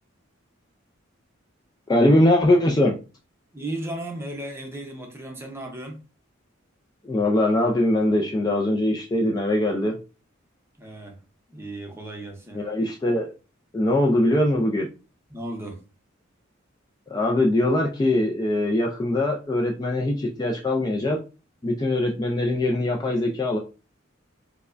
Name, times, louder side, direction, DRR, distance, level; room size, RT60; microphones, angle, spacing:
voice 1, 1.9-2.9 7.0-10.0 12.5-13.3 13.7-14.9 17.1-21.2 21.6-23.6, left 1 dB, 20° left, 0.3 m, -22 dB
voice 2, 3.5-6.0 10.8-11.2 11.5-12.7 15.3-15.8, right 1 dB, 10° right, 0.6 m, -35 dB
4.5 x 2.1 x 2.4 m
head